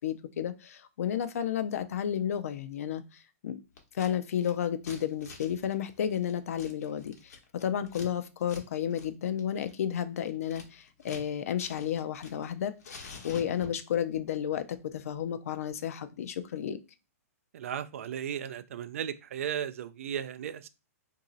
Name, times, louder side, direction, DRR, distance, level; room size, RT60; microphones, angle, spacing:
voice 1, 0.0-3.6 3.9-7.3 7.6-16.8, left 9 dB, 65° left, 0.5 m, -32 dB
Scissors, 3.8-4.1 4.4-8.1 8.4-8.6 8.9-9.1 9.4-11.3 11.6-12.5 12.8-13.9, left 4 dB, 85° left, 1.1 m, -48 dB
voice 2, 17.5-20.7, right 9 dB, 60° right, 0.3 m, -35 dB
2.9 x 2.7 x 3.8 m
hypercardioid pair, 170°, 9 cm